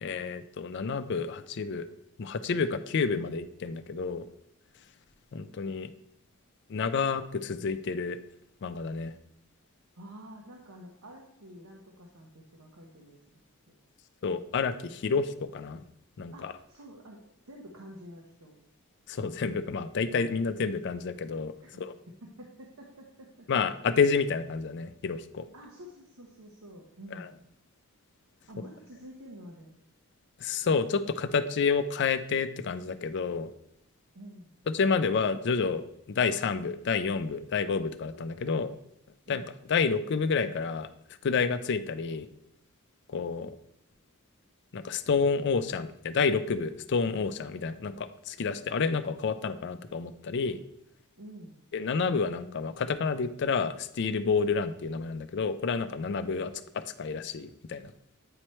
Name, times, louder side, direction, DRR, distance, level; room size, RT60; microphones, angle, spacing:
voice 1, 0.0-1.9 2.2-4.2 5.3-5.9 6.7-8.2 8.6-9.1 14.2-15.8 16.2-16.5 19.1-21.5 21.8-21.9 23.5-25.4 30.4-33.5 34.7-38.7 39.3-39.4 39.7-40.9 41.2-42.3 43.1-43.5 44.7-50.6 51.7-57.9, left 5 dB, 55° left, 11 dB, 0.4 m, -29 dB
voice 2, 10.0-13.2 13.7-13.8 16.3-18.5 21.6-21.8 22.2-23.5 25.5-27.3 28.5-29.7 34.1-34.5 39.3-39.5 51.2-51.7 56.3-56.5, equal, 75° right, 0 dB, 0.9 m, -48 dB
8.7 x 3.1 x 4.3 m, 0.78 s
head